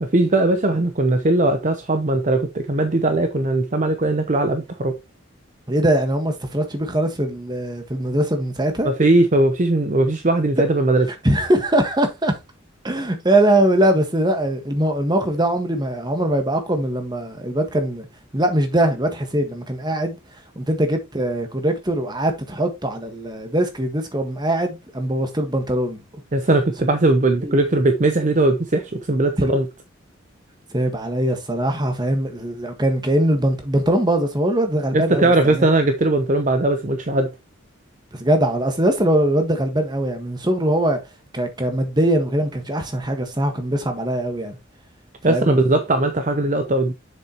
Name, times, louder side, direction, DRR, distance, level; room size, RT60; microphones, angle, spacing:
voice 1, 0.0-5.0 8.8-11.1 26.3-29.7 34.9-37.3 45.2-46.9, right 2 dB, 40° right, 0.7 m, -19 dB
voice 2, 5.7-8.9 11.2-12.4 12.8-18.1 18.3-20.2 20.5-26.0 27.4-27.5 29.4-29.5 30.7-35.7 38.2-41.0 41.3-44.6 45.3-45.5, right 1 dB, 20° right, 1.5 m, -21 dB
7.5 x 6.5 x 3.0 m
head